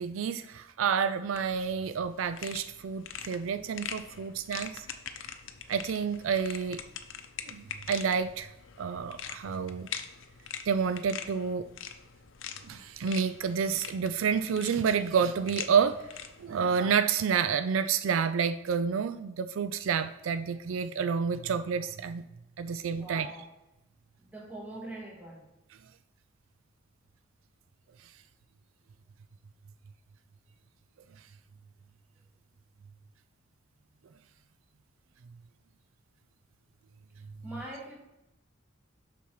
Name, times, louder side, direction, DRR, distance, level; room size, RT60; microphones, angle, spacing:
voice 1, 0.0-4.8 5.7-6.8 7.5-8.5 8.8-9.9 10.7-11.7 12.7-16.0 16.4-22.2 22.6-23.3, right 6 dB, 80° right, 11 dB, 0.4 m, -29 dB
sound 1, 1.3-16.7, left 8 dB, 70° left, 0.7 m, -44 dB
voice 2, 23.0-23.5 24.2-25.5 37.4-38.0, right 1 dB, 10° right, -3 dB, 1.7 m, -42 dB
6.9 x 6.0 x 4.7 m, 0.90 s
head